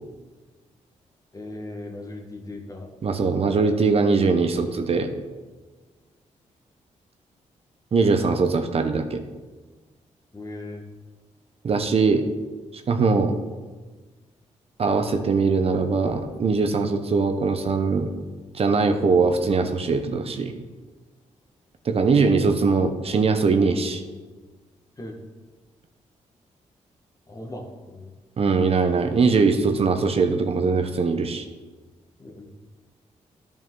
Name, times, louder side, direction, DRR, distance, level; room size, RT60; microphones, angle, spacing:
voice 1, 1.3-2.9 10.3-10.8 25.0-25.2 27.3-28.1 32.2-32.5, left 2 dB, 25° left, 2 dB, 1.4 m, -38 dB
voice 2, 3.0-5.1 7.9-9.2 11.6-12.2 12.7-13.3 14.8-18.1 18.5-20.5 21.9-24.0 28.4-31.4, right 4 dB, 50° right, 6 dB, 0.7 m, -21 dB
12.0 x 5.3 x 3.7 m, 1.3 s
cardioid pair, 85°, 13 cm